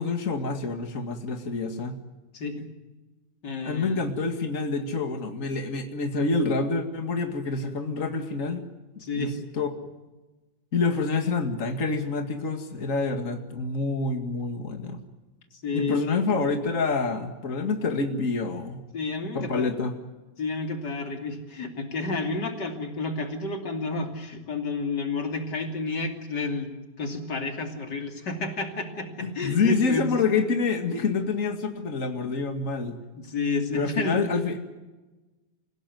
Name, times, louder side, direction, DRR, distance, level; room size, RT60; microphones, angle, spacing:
voice 1, 0.0-2.0 3.7-8.6 9.2-9.7 10.7-15.0 15.7-18.8 19.3-20.0 29.2-33.0 33.7-34.6, left 4 dB, 50° left, 5 dB, 2.5 m, -27 dB
voice 2, 2.3-2.7 3.4-4.0 9.0-9.4 15.6-16.0 18.9-19.7 20.4-26.7 27.0-30.2 33.2-34.3, left 3 dB, 85° left, 4 dB, 3.5 m, -30 dB
27.5 x 17.0 x 9.4 m, 1.2 s
omnidirectional pair, 1.8 m